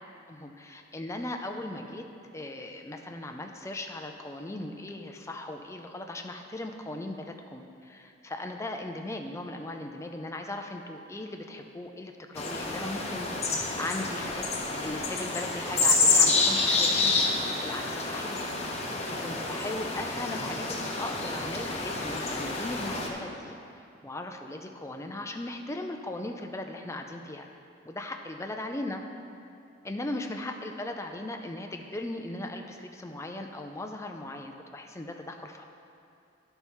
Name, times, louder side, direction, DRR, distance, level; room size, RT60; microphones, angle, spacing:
voice 1, 0.3-2.1 2.3-17.3 17.6-18.5 18.8-23.6 24.0-27.5 27.8-29.0 29.8-35.6, left 1 dB, 15° left, 4 dB, 0.5 m, -38 dB
sound 1, 12.4-23.1, left 3 dB, 35° left, 0.9 m, -28 dB
11.5 x 4.6 x 5.6 m, 2.6 s
head